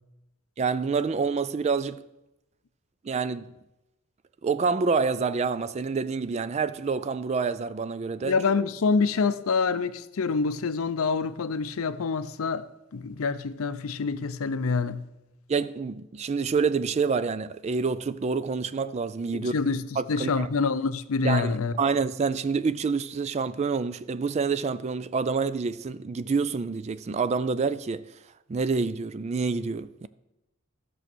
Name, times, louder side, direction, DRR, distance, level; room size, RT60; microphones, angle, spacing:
voice 1, 0.6-2.0 3.0-3.5 4.4-8.4 15.5-19.5 20.0-20.5 21.2-28.1 28.5-30.1, right 5 dB, 30° right, 0.3 m, -27 dB
voice 2, 8.2-12.7 12.9-15.1 19.3-21.8, left 4 dB, 70° left, 0.5 m, -26 dB
13.5 x 6.3 x 6.1 m
head